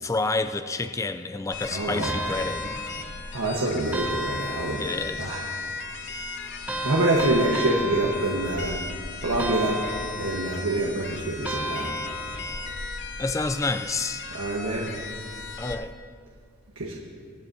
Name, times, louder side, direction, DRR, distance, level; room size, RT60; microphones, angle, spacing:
voice 1, 0.0-2.8 4.8-5.4 13.2-14.2 15.6-15.9, left 3 dB, 15° left, 9 dB, 0.3 m, -29 dB
sound 1, 1.5-15.8, left 4 dB, 55° left, 0.8 m, -37 dB
voice 2, 1.7-2.2 3.3-4.8 5.2-5.4 6.1-6.4 6.8-8.8 9.2-9.8 10.2-12.0 14.3-14.9 16.7-17.0, right 2 dB, 70° right, -4 dB, 1.2 m, -26 dB
sound 2, 2.0-3.3 3.9-5.2 6.7-8.9 9.4-10.7 11.4-12.7, equal, 5° right, 0.8 m, -33 dB
24.0 x 9.0 x 2.7 m, 2.1 s
head